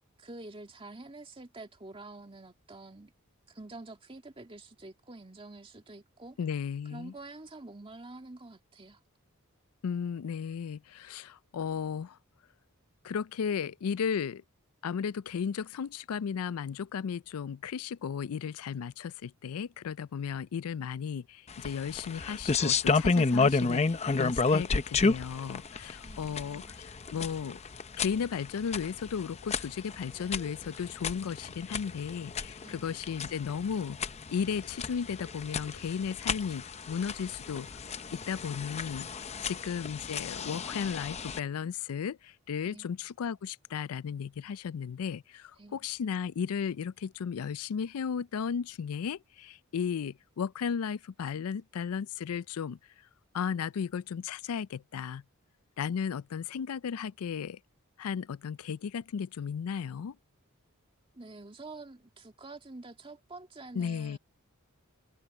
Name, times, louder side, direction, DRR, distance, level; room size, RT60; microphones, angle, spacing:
voice 1, 0.2-3.1 3.5-6.4 6.9-9.0 26.0-26.8 32.6-32.9 39.3-39.6 42.7-42.9 45.6-45.9 61.1-64.2, right 2 dB, 25° right, 2.1 m, -47 dB
voice 2, 6.4-7.1 9.8-12.2 13.0-14.4 14.8-27.6 28.0-34.0 34.3-37.7 38.1-52.8 53.3-55.2 55.8-57.6 58.0-60.2 63.7-64.2, left 7 dB, 80° left, 0.4 m, -35 dB
sound 1, 21.5-41.4, left 4 dB, 30° left, 0.6 m, -32 dB
head